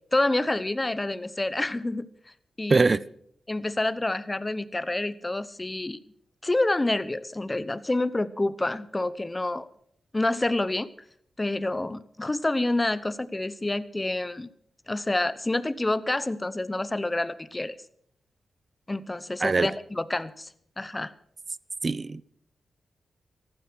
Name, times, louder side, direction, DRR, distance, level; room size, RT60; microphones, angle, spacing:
voice 1, 0.1-2.1 2.6-3.0 3.5-6.0 6.4-9.7 10.1-10.9 11.4-14.5 14.9-17.8 18.9-20.5 20.8-21.1, left 2 dB, 20° left, 0.9 m, -28 dB
voice 2, 2.7-3.0 19.4-19.7 21.8-22.2, right 3 dB, 40° right, 0.6 m, -22 dB
15.0 x 12.0 x 6.2 m
cardioid pair, 60°, 0 cm